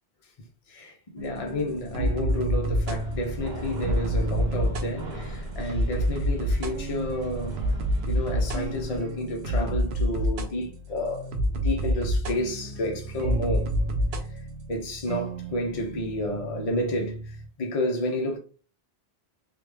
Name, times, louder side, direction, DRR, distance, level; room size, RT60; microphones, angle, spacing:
voice 1, 0.4-7.6 8.1-11.3 11.5-13.7 14.7-18.4, left 1 dB, 40° left, 0.7 m, -31 dB
sound 1, 1.2-17.5, equal, 85° right, 0.9 m, -29 dB
sound 2, 2.8-9.0, equal, 50° right, 1.0 m, -38 dB
3.7 x 2.3 x 3.2 m
omnidirectional pair, 1.0 m